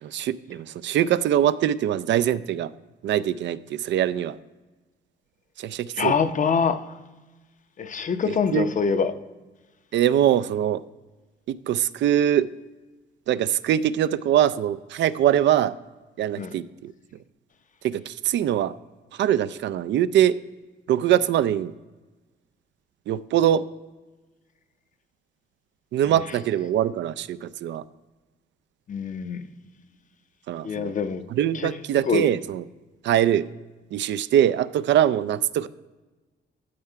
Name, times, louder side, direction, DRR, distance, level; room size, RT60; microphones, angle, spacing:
voice 1, 0.0-2.7 3.0-4.4 5.6-6.1 8.3-8.7 9.9-10.8 11.5-12.5 13.3-15.8 16.2-16.9 17.8-18.7 19.1-20.4 20.9-21.7 23.1-23.7 25.9-27.8 30.5-30.9 31.3-32.6 33.0-33.4 33.9-35.7, right 11 dB, 65° right, 0.4 m, -23 dB
voice 2, 5.9-6.8 7.8-9.1 16.4-16.5 26.0-26.4 28.9-29.5 30.6-31.2 31.5-31.7 32.0-32.3, left 6 dB, 40° left, 0.7 m, -25 dB
12.0 x 4.7 x 4.5 m
cardioid pair, 90°, 20 cm